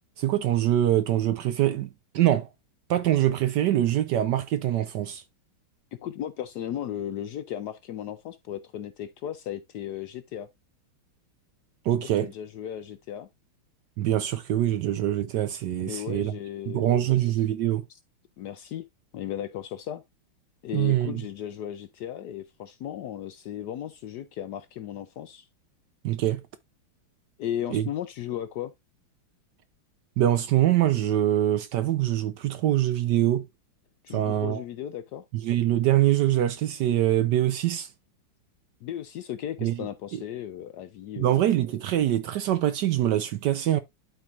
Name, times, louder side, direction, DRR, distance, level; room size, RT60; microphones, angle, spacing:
voice 1, 0.2-2.5 2.9-5.2 11.8-12.3 14.0-16.3 16.7-17.8 20.7-21.2 26.0-26.4 27.7-27.9 30.2-33.5 34.1-34.6 35.3-37.9 39.6-39.8 40.1-40.2 41.2-43.8, right 12 dB, 75° right, 1.0 m, -24 dB
voice 2, 5.9-10.5 12.2-13.3 15.9-17.0 18.4-18.8 19.1-20.0 20.6-25.5 27.4-28.7 34.0-35.2 38.8-41.5, left 11 dB, 75° left, 0.9 m, -35 dB
12.0 x 4.5 x 2.4 m
omnidirectional pair, 2.3 m